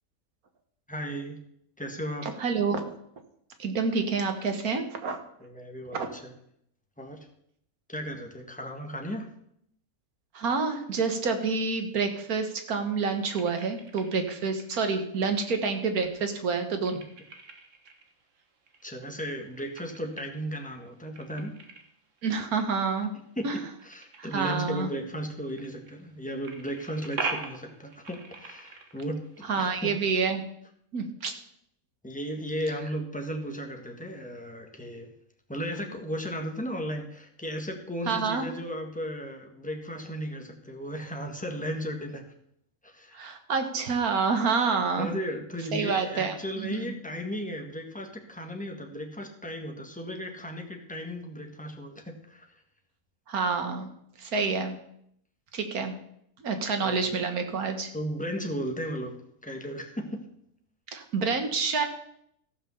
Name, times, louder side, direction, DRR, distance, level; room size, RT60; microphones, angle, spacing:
voice 1, 0.9-1.4 1.8-2.3 5.4-6.3 7.0-7.2 7.9-9.3 16.9-17.0 18.8-21.5 23.4-23.6 23.8-29.9 32.0-35.1 35.5-42.2 42.8-43.2 45.0-52.5 56.8-57.5 57.9-60.3, equal, 5° left, 3 dB, 1.5 m, -35 dB
voice 2, 2.2-2.8 3.6-5.2 5.9-6.1 10.3-16.9 22.2-23.1 23.4-23.6 24.2-24.9 29.5-30.4 30.9-31.3 38.1-38.5 43.1-45.1 45.7-46.9 53.3-53.9 54.2-54.8 55.5-56.0 56.4-57.9 60.9-61.9, right 5 dB, 85° right, 6 dB, 1.9 m, -28 dB
sound 1, 12.1-29.7, right 4 dB, 60° right, 1.7 m, -43 dB
14.5 x 5.6 x 6.9 m, 0.72 s
omnidirectional pair, 1.5 m